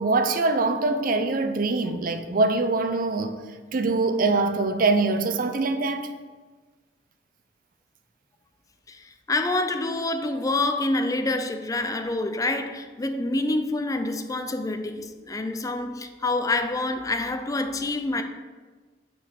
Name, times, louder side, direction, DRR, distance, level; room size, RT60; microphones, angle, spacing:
voice 1, 0.0-3.4 3.7-6.1, right 3 dB, 50° right, 0.5 m, -23 dB
voice 2, 8.9-18.2, left 2 dB, 20° left, 0.5 m, -27 dB
6.1 x 4.6 x 6.3 m
head